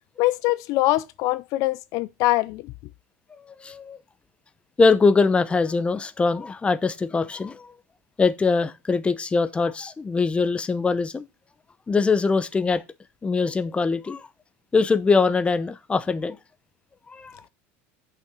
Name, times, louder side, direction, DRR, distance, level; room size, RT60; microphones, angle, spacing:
voice 1, 0.2-2.6, left 18 dB, 60° left, 0.5 m, -23 dB
voice 2, 3.6-4.0 4.8-7.7 8.2-11.3 11.9-12.8 13.2-14.3 14.7-16.4 17.1-17.3, left 4 dB, 15° left, 0.7 m, -22 dB
6.6 x 5.8 x 6.0 m
supercardioid pair, 110°, 7 cm